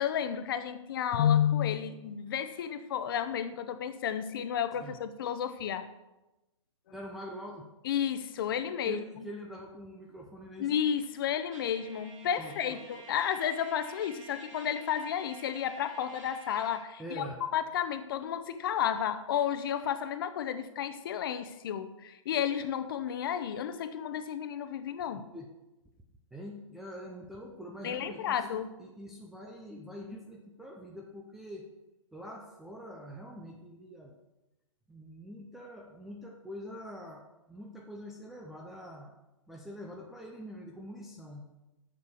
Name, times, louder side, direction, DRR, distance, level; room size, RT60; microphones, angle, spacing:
voice 1, 0.0-5.9 7.8-9.0 10.6-17.3 17.5-25.3 27.8-28.7, left 9 dB, 45° left, 11 dB, 0.7 m, -32 dB
voice 2, 6.9-7.7 8.8-10.8 12.4-12.8 17.0-17.4 25.3-25.5 26.3-31.7 32.1-34.2 34.9-39.1 39.5-41.5, equal, ahead, -3 dB, 0.3 m, -44 dB
Trumpet, 11.5-16.8, right 2 dB, 65° right, 3.3 m, -51 dB
6.8 x 6.7 x 6.2 m, 1.0 s
hypercardioid pair, 155°, 17 cm